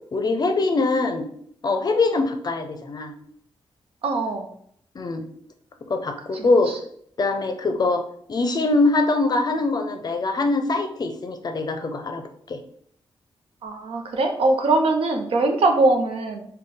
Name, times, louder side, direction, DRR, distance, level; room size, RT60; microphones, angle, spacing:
voice 1, 0.1-1.3 1.6-3.1 4.9-5.3 5.9-6.8 7.2-8.0 8.3-12.6, left 3 dB, 45° left, 6 dB, 0.5 m, -23 dB
voice 2, 4.0-4.5 6.3-6.8 13.6-16.4, right 2 dB, 75° right, 4 dB, 0.6 m, -22 dB
3.8 x 2.2 x 3.4 m, 0.65 s
wide cardioid pair, 115°, 10 cm